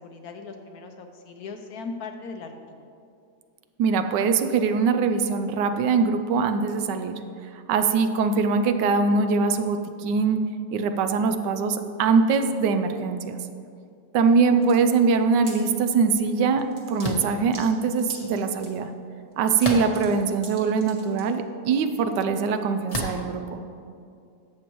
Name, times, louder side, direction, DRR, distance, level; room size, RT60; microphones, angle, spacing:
voice 1, 0.0-2.8 8.4-8.5 14.4-14.6, left 4 dB, 70° left, 5 dB, 1.0 m, -39 dB
voice 2, 3.8-7.2 7.5-10.4 10.7-13.4 14.1-18.9 19.4-23.6, right 5 dB, 80° right, 8 dB, 1.2 m, -22 dB
sound 1, 14.6-14.8 15.2-15.6 16.2-16.3 16.6-18.7 19.3-21.2, right 2 dB, 40° right, 1.6 m, -44 dB
sound 2, 17.0-17.3 19.6-20.2 20.9-21.0 22.9-23.3, left 2 dB, 30° left, 0.8 m, -30 dB
12.0 x 7.4 x 3.0 m, 2.4 s
omnidirectional pair, 1.9 m